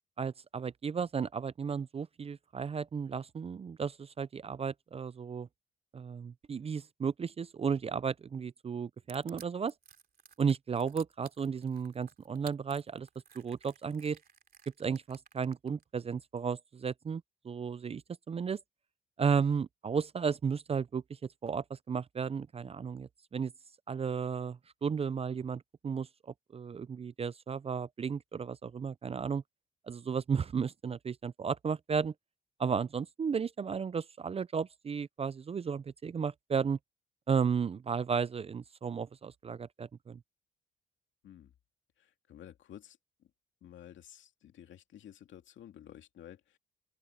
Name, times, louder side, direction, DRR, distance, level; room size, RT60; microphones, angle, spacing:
voice 1, 0.2-5.5 5.9-9.7 10.4-13.1 13.4-14.2 14.8-18.0 18.3-18.6 19.2-23.5 23.9-26.1 26.5-29.4 29.9-32.1 32.6-36.8 37.3-40.2, right 6 dB, 30° right, 0.5 m, -34 dB
Crushing, 9.1-15.8, right 7 dB, 50° right, 3.0 m, -55 dB
voice 2, 42.0-43.0 43.6-46.6, left 11 dB, 70° left, 2.3 m, -52 dB
open air
cardioid pair, 90°, 20 cm